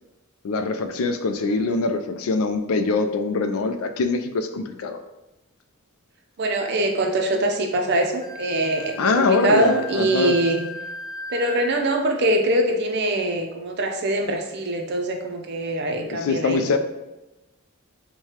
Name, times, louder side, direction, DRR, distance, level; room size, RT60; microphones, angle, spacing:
voice 1, 0.4-5.0 9.0-10.3 16.1-16.8, left 3 dB, 80° left, 8 dB, 0.4 m, -23 dB
voice 2, 6.4-10.6 11.3-16.7, right 1 dB, 50° right, 3 dB, 0.5 m, -23 dB
Wind instrument woodwind instrument, 8.2-11.9, left 3 dB, 15° left, 0.4 m, -37 dB
4.7 x 2.2 x 2.8 m, 1.0 s
head